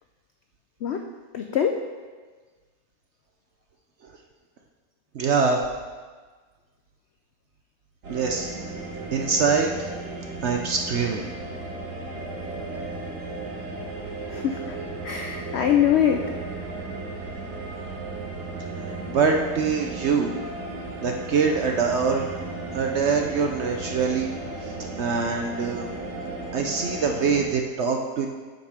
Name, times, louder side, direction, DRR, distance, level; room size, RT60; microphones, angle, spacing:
voice 1, 1.3-1.8 14.3-14.8 15.0-16.2, left 9 dB, 75° left, 5 dB, 0.6 m, -23 dB
voice 2, 5.1-5.6 8.1-8.5 9.1-9.9 10.4-11.2 18.8-20.3 21.0-22.3 22.7-24.3 24.6-25.9 26.5-28.3, right 5 dB, 60° right, 3 dB, 0.8 m, -24 dB
sound 1, 8.0-27.4, right 2 dB, 80° right, 2.3 m, -35 dB
8.8 x 6.5 x 4.8 m, 1.4 s
omnidirectional pair, 1.7 m